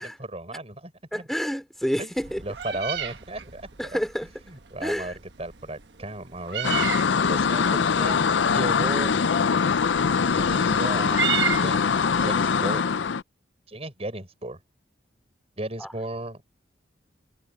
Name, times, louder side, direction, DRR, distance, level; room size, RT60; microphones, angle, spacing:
voice 1, 0.0-1.2 2.0-2.1 2.4-4.0 4.5-6.8 7.3-9.1 10.3-11.2 11.5-11.9 12.2-12.8 13.7-14.6 15.6-16.4, right 1 dB, 35° right, 5.7 m, -35 dB
voice 2, 1.1-2.4 3.8-4.3 4.8-5.2 15.8-15.9, equal, ahead, 2.9 m, -29 dB
Meow, 2.2-12.3, right 7 dB, 70° right, 1.2 m, -34 dB
sound 1, 6.6-13.2, left 6 dB, 85° left, 0.5 m, -23 dB
head